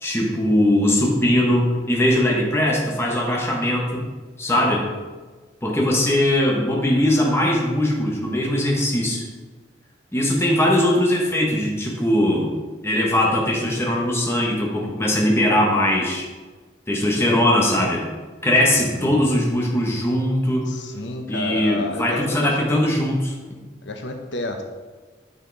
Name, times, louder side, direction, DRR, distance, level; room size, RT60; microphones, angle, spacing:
voice 1, 0.0-4.1 4.4-4.9 5.6-9.2 10.1-12.5 12.8-16.3 16.9-18.0 18.4-20.7 21.3-23.6, left 1 dB, 15° left, -2 dB, 1.3 m, -20 dB
voice 2, 18.8-19.2 20.7-22.7 23.8-24.6, left 2 dB, 90° left, 4 dB, 1.0 m, -30 dB
9.5 x 5.6 x 4.1 m, 1.3 s
head